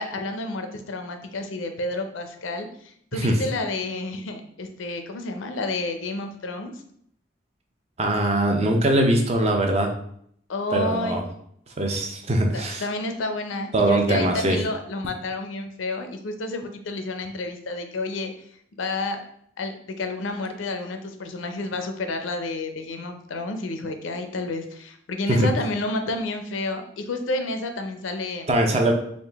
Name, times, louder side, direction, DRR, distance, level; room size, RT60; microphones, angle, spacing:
voice 1, 0.0-6.7 10.5-11.2 12.5-18.3 18.8-19.2 19.6-28.5, left 2 dB, 85° left, 7 dB, 0.5 m, -30 dB
voice 2, 8.0-9.9 10.7-11.2 11.8-12.8 13.7-14.6 25.3-25.5 28.5-28.9, right 1 dB, 35° right, 3 dB, 0.5 m, -21 dB
3.6 x 2.5 x 3.4 m, 0.67 s
head